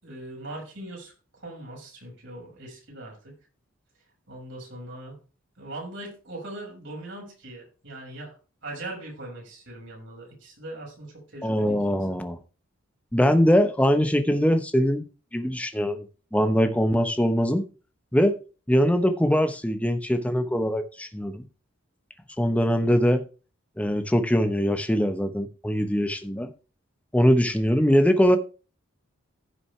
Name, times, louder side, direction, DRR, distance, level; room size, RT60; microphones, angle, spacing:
voice 1, 0.0-3.3 4.3-5.2 5.6-12.0, right 1 dB, 60° right, 6.2 m, -40 dB
voice 2, 11.4-12.4 13.1-15.0 15.3-17.7 18.1-18.3 18.7-21.4 22.4-23.2 23.8-26.5 27.1-28.4, equal, 5° left, 0.9 m, -22 dB
15.5 x 6.2 x 3.3 m
head